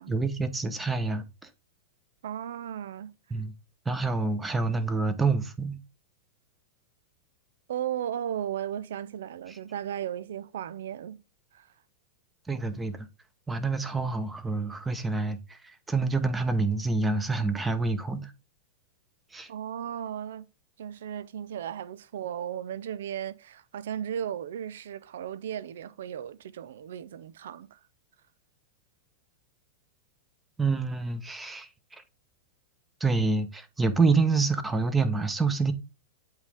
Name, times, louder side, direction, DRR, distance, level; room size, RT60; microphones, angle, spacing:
voice 1, 0.1-1.5 3.3-3.5 3.8-5.8 9.5-9.6 12.5-13.1 13.5-18.3 19.3-19.5 30.6-32.0 33.0-35.7, right 3 dB, 10° right, 0.9 m, -27 dB
voice 2, 2.2-3.1 7.7-11.2 11.5-11.7 19.5-20.5 20.8-27.8, right 9 dB, 75° right, 0.5 m, -35 dB
8.0 x 3.7 x 3.4 m
hypercardioid pair, 125°, 0 cm